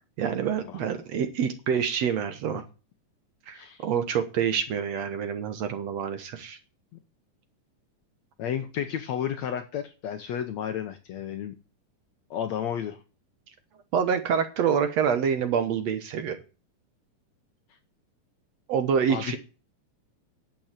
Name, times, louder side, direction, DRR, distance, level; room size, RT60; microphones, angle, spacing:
voice 1, 0.2-2.6 3.5-6.6 13.9-16.4 18.7-19.4, right 7 dB, 65° right, 10 dB, 2.0 m, -27 dB
voice 2, 3.5-3.8 8.4-11.5 12.3-13.0 19.1-19.4, left 9 dB, 65° left, 8 dB, 2.0 m, -32 dB
10.5 x 7.9 x 7.4 m, 0.33 s
omnidirectional pair, 3.7 m